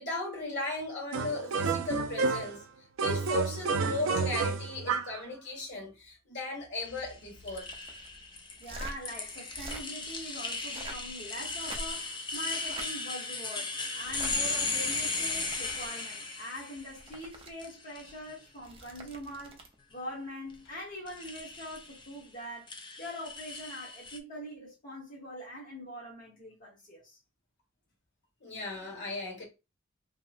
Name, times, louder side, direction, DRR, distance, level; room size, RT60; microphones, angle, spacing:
voice 1, 0.0-2.6 3.0-7.7 28.4-29.4, left 2 dB, 65° left, 1.4 m, -36 dB
sound 1, 1.1-2.6 3.0-5.2, right 4 dB, 80° right, 0.3 m, -30 dB
sound 2, 6.9-17.2 17.6-18.3 21.1-22.1 22.7-24.2, left 3 dB, 25° left, 0.4 m, -36 dB
sound 3, 7.3-8.1 8.6-9.0 9.4-9.8 10.6-11.1 11.5-12.1 12.6-12.9 14.0-14.3 15.1-15.9 16.8-17.5 18.5-19.7 21.6-21.8, right 2 dB, 30° right, 0.5 m, -45 dB
voice 2, 8.6-19.7 19.9-22.7 23.0-27.2, equal, 45° left, 1.0 m, -43 dB
2.9 x 2.8 x 2.4 m
head